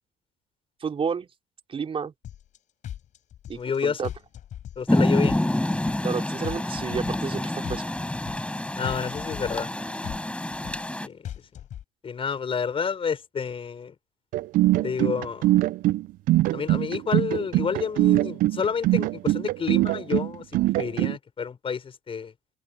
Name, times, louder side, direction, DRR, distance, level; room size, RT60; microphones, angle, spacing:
voice 1, 0.8-1.3 1.7-2.1 3.5-4.1 6.0-7.8, right 6 dB, 40° right, 5.4 m, -30 dB
sound 1, 2.2-2.6 2.8-3.8 4.0-5.0 5.2-6.2 6.4-7.4 7.6-8.6 8.8-9.8 10.0-11.0 11.2-11.8, left 11 dB, 55° left, 7.6 m, -38 dB
voice 2, 3.5-4.1 4.8-5.4 8.8-9.7 11.0-11.5 12.0-14.0 14.8-15.5 16.5-22.3, left 6 dB, 40° left, 6.0 m, -30 dB
Rain, 4.9-11.1, left 1 dB, 10° left, 6.6 m, -27 dB
sound 2, 14.3-21.2, right 16 dB, 65° right, 0.9 m, -22 dB
hypercardioid pair, 70°, 15 cm